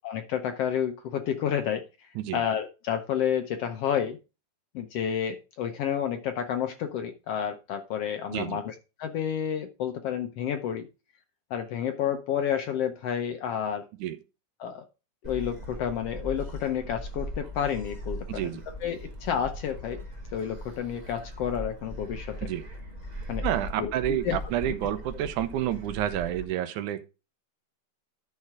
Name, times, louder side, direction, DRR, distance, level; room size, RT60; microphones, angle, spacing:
voice 1, 0.0-1.8 2.3-4.2 4.7-10.9 11.5-13.8 14.6-14.8 15.2-18.4 18.8-20.0 20.3-22.5 23.3-23.4 23.8-24.4 24.7-24.8, left 9 dB, 70° left, 6 dB, 1.5 m, -30 dB
Gull seagull, 15.2-26.4, equal, 60° right, 0.4 m, -39 dB
voice 2, 18.3-18.6 22.4-22.6 23.4-27.1, right 11 dB, 80° right, 11 dB, 2.3 m, -29 dB
12.0 x 4.5 x 4.8 m, 0.30 s
omnidirectional pair, 3.5 m